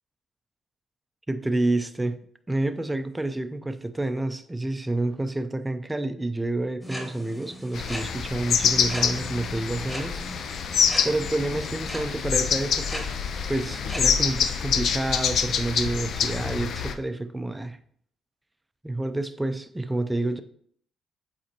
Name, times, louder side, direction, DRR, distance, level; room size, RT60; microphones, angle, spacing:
voice 1, 1.3-2.2 2.5-10.2 10.8-13.1 13.5-17.8 18.8-20.4, right 2 dB, 10° right, 10 dB, 0.5 m, -29 dB
sound 1, 6.8-14.0, equal, 10° left, 1.5 m, -39 dB
sound 2, 7.7-16.9, left 7 dB, 65° left, 0.5 m, -26 dB
7.8 x 4.2 x 2.9 m, 0.62 s
cardioid pair, 90°, 0 cm